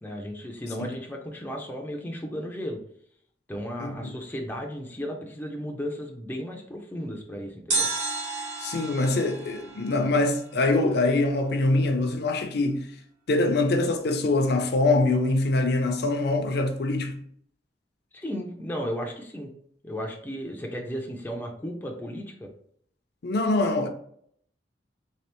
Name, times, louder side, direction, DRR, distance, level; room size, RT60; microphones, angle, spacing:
voice 1, 0.0-2.8 3.5-7.9 18.1-19.5 19.8-22.5, equal, 10° left, 0.4 m, -34 dB
voice 2, 3.8-4.1 8.6-12.9 13.3-17.2 23.2-23.9, left 2 dB, 60° left, 0.5 m, -24 dB
sound 1, 7.7-10.8 11.0-11.1, right 3 dB, 80° right, 1.1 m, -32 dB
3.2 x 3.2 x 3.0 m
head